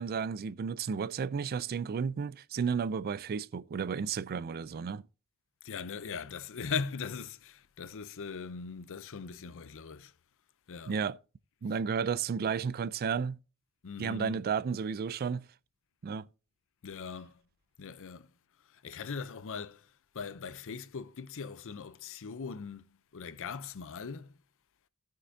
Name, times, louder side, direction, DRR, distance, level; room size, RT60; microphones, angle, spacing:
voice 1, 0.0-5.0 10.9-11.2 11.6-13.4 14.0-15.4 16.0-16.3, right 6 dB, 45° right, 0.3 m, -32 dB
voice 2, 5.6-10.1 10.7-11.0 13.8-14.4 16.8-17.4 17.8-18.3 18.7-24.3, left 5 dB, 60° left, 0.6 m, -40 dB
16.0 x 6.6 x 2.7 m
head